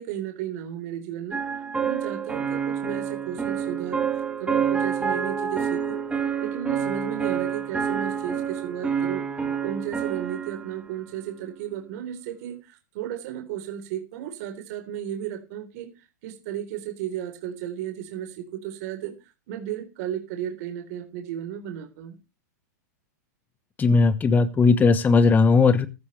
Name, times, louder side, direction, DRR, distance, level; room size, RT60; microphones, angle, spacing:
voice 1, 0.0-4.1 4.4-9.2 9.6-19.2 19.5-22.2, right 10 dB, 55° right, 4 dB, 3.9 m, -34 dB
sound 1, 1.3-10.8, right 7 dB, 10° right, 5.0 m, -28 dB
voice 2, 23.8-25.9, left 4 dB, 15° left, 12 dB, 1.1 m, -18 dB
15.0 x 14.0 x 3.3 m, 0.29 s
hypercardioid pair, 125°, 10 cm